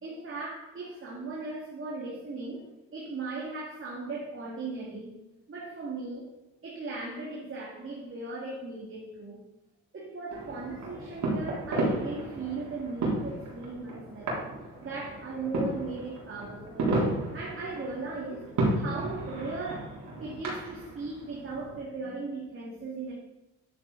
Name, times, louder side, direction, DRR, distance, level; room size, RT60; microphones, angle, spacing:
voice 1, 0.0-5.2 5.5-6.3 6.6-9.4 9.9-14.4 14.8-17.0 17.3-23.1, right 3 dB, 45° right, -4 dB, 2.4 m, -38 dB
sound 1, 10.3-21.8, right 2 dB, 70° right, 3.6 m, -33 dB
10.5 x 7.4 x 4.1 m, 0.97 s
cardioid pair, 90°, 30 cm